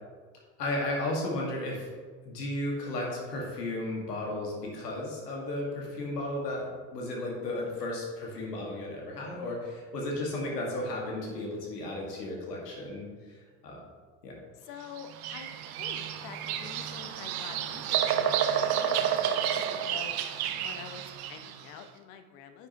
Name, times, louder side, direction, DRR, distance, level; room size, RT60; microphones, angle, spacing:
voice 1, 0.6-1.9 2.2-13.4 13.6-13.8 14.2-14.3, left 1 dB, 85° left, -2 dB, 1.8 m, -34 dB
voice 2, 14.6-15.5 15.8-20.2 20.6-22.7, left 7 dB, 65° left, 8 dB, 1.0 m, -47 dB
Bird vocalization bird call bird song, 15.0-21.6, right 9 dB, 50° right, 0.9 m, -30 dB
9.8 x 6.4 x 2.9 m, 1.5 s
hypercardioid pair, 65°, 47 cm